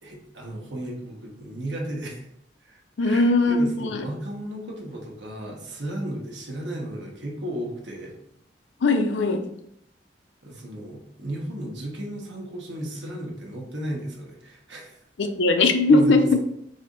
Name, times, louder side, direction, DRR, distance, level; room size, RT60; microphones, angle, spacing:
voice 1, 0.0-2.3 2.6-8.2 10.4-15.0 15.9-16.4, right 1 dB, 80° right, 0 dB, 1.1 m, -34 dB
voice 2, 3.0-4.0 8.8-9.4 15.2-16.2, left 2 dB, 80° left, 6 dB, 0.5 m, -20 dB
4.2 x 2.7 x 3.8 m, 0.73 s
head